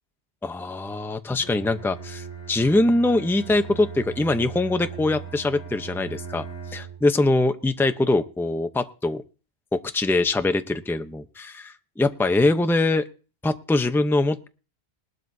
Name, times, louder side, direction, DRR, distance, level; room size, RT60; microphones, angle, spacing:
voice 1, 0.4-6.5 6.7-9.2 9.7-13.0 13.4-14.5, left 2 dB, ahead, 8 dB, 0.7 m, -23 dB
Bowed string instrument, 1.4-7.1, right 6 dB, 15° right, 5.1 m, -38 dB
20.5 x 12.5 x 2.8 m, 0.36 s
omnidirectional pair, 1.1 m